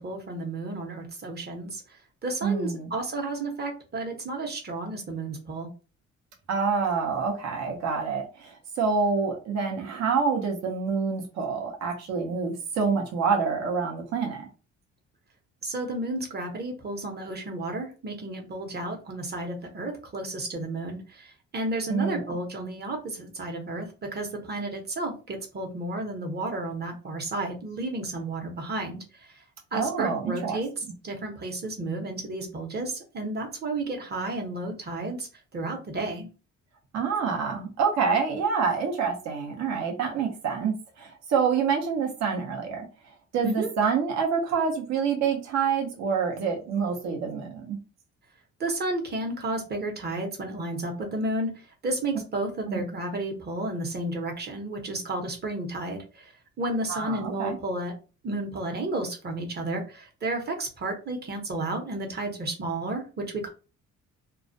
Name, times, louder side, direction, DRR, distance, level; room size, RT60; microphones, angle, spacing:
voice 1, 0.0-1.8 2.2-5.7 15.6-21.3 21.5-29.0 29.7-30.7 31.0-35.3 35.5-36.3 43.4-43.7 48.6-51.5 51.8-56.0 56.6-57.9 58.2-63.5, right 2 dB, 35° right, 3 dB, 0.8 m, -32 dB
voice 2, 2.4-2.9 6.5-14.5 21.9-22.4 29.7-30.6 36.9-42.8 43.3-47.8 52.7-52.8 56.9-57.6, right 5 dB, 65° right, 1 dB, 0.7 m, -27 dB
2.3 x 2.1 x 2.6 m, 0.34 s
cardioid pair, 90°, 30 cm